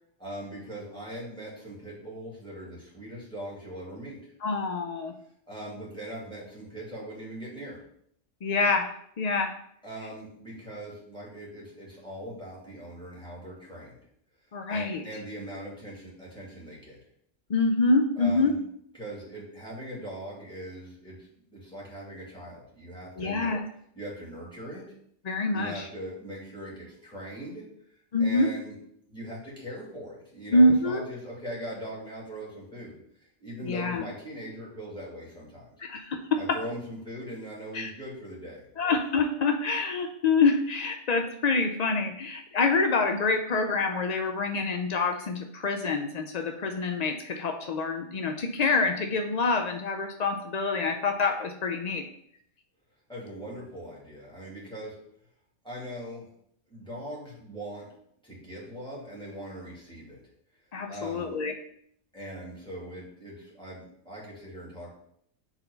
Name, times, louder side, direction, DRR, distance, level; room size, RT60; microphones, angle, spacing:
voice 1, 0.2-4.2 5.5-7.8 9.8-14.0 14.7-17.0 18.2-18.6 18.9-23.5 23.9-24.9 25.5-27.7 28.2-28.8 29.1-33.0 33.4-35.7 36.3-38.7 53.1-54.9 55.6-56.3 56.7-57.9 58.2-60.2 60.9-61.3 62.1-64.9, right 1 dB, 5° left, -6 dB, 2.3 m, -40 dB
voice 2, 4.4-5.1 8.4-8.9 9.2-9.5 14.5-15.0 17.5-18.5 23.2-23.6 25.2-25.9 28.1-28.5 30.5-31.0 33.6-34.0 35.8-36.4 37.7-37.9 38.8-52.0 60.7-61.5, left 3 dB, 80° left, 5 dB, 0.3 m, -26 dB
4.4 x 4.0 x 5.2 m, 0.68 s
omnidirectional pair, 1.4 m